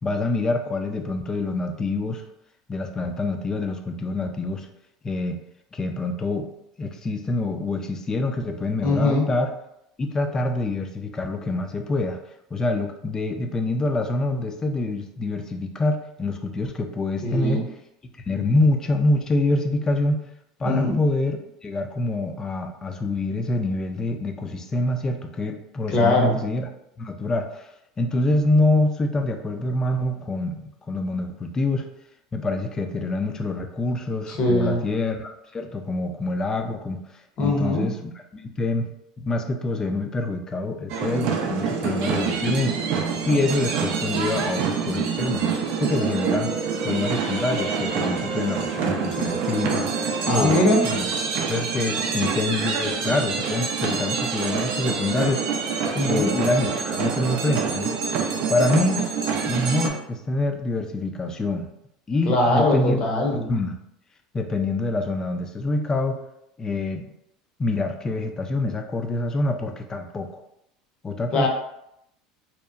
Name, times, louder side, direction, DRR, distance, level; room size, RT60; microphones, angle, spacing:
voice 1, 0.0-2.2 2.7-4.7 5.0-5.4 5.7-6.5 6.8-9.5 10.0-12.2 12.5-17.7 18.3-20.2 20.6-26.7 27.0-27.7 28.0-31.9 32.3-37.0 37.4-38.9 39.2-42.8 43.3-45.5 45.8-46.5 46.8-49.9 50.3-51.1 51.5-55.6 56.0-58.0 58.5-59.1 59.5-61.7 62.1-63.0 63.5-63.8 64.3-66.2 66.6-67.1 67.6-70.4 71.0-71.5, left 2 dB, 25° left, 5 dB, 0.4 m, -26 dB
voice 2, 8.8-9.3 17.2-17.6 20.6-21.0 25.9-26.3 34.3-34.8 37.4-37.9 50.2-50.8 55.9-56.3 62.3-63.4 71.3-71.5, left 1 dB, 50° left, 0 dB, 0.7 m, -21 dB
sound 1, 40.9-59.9, right 6 dB, 65° right, 0.4 m, -26 dB
2.8 x 2.0 x 2.4 m, 0.79 s
hypercardioid pair, 90°, 2 cm